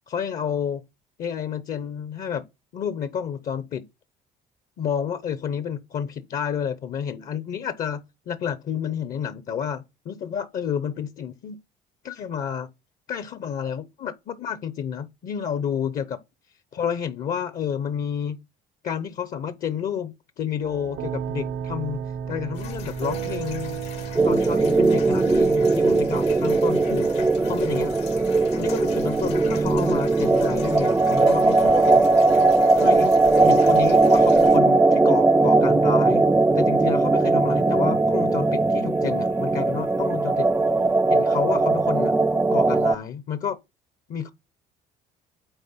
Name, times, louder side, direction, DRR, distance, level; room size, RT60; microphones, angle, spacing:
voice 1, 0.1-0.8 1.2-2.4 2.7-3.8 4.8-11.6 12.0-12.7 13.1-16.2 16.7-18.4 18.8-22.0 22.3-23.9 24.2-27.1 27.4-27.9 28.6-32.0 32.8-36.3 36.5-40.5 41.1-42.1 42.5-43.6 44.1-44.3, left 8 dB, 55° left, 0.7 m, -30 dB
sound 1, 20.6-37.1, right 7 dB, 80° right, 0.7 m, -37 dB
sound 2, 22.5-34.6, left 8 dB, 90° left, 2.2 m, -41 dB
sound 3, 24.1-42.9, right 3 dB, 15° right, 0.4 m, -19 dB
9.0 x 4.2 x 5.6 m
cardioid pair, 110°, 17 cm